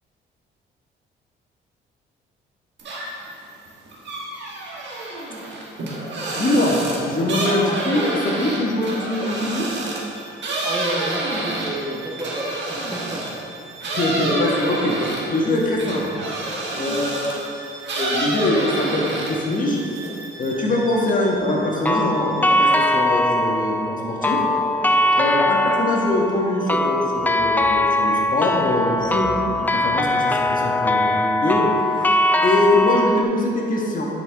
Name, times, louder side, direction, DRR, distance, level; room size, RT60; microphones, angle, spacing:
sound 1, 2.8-3.3 3.7-13.4 13.8-17.5 17.8-19.5 19.9-20.5, right 2 dB, 65° right, 1.6 m, -28 dB
voice 1, 6.4-6.8 7.0-9.7 13.9-16.2 16.8-17.6 17.8-19.8 20.4-24.4 25.2-31.6 32.4-34.1, left 1 dB, 45° left, -3 dB, 1.6 m, -23 dB
Bowed string instrument, 9.1-22.9, right 3 dB, 80° right, 0.9 m, -41 dB
voice 2, 10.6-13.5 20.5-20.7 25.0-25.4 32.1-32.4, right 1 dB, 20° right, -2 dB, 1.1 m, -32 dB
sound 2, 21.9-33.2, left 1 dB, 10° left, 0.4 m, -21 dB
9.4 x 5.7 x 3.6 m, 2.6 s
cardioid pair, 90°, 20 cm